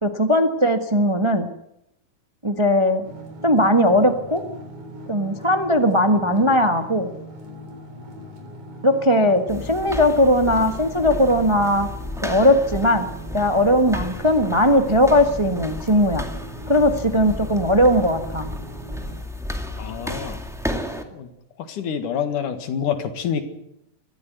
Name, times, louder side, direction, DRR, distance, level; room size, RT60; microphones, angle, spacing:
voice 1, 0.0-1.5 2.4-3.0 3.4-4.4 5.1-7.1 8.8-11.9 12.2-13.1 13.3-16.3 16.7-18.5, left 1 dB, 50° right, 6 dB, 0.3 m, -18 dB
sound 1, 3.0-19.2, left 1 dB, 65° right, 5.1 m, -39 dB
sound 2, 9.5-21.0, left 1 dB, ahead, 1.2 m, -33 dB
voice 2, 19.8-20.4 21.1-21.3 21.6-23.4, left 8 dB, 80° left, 8 dB, 3.4 m, -27 dB
21.5 x 14.5 x 9.4 m, 0.81 s
omnidirectional pair, 3.6 m